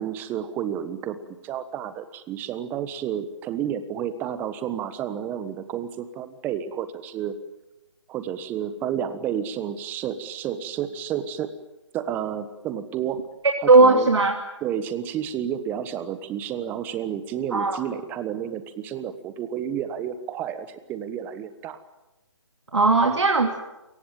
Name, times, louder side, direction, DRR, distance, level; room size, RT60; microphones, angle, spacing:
voice 1, 0.0-7.3 8.1-11.5 11.9-13.2 13.6-14.1 14.6-21.8, right 9 dB, 10° right, 12 dB, 1.3 m, -31 dB
voice 2, 13.7-14.4 17.5-17.8 22.7-23.6, right 3 dB, 65° right, 2 dB, 2.8 m, -17 dB
28.5 x 19.0 x 9.1 m, 1.0 s
figure-of-eight pair, 150°, 16 cm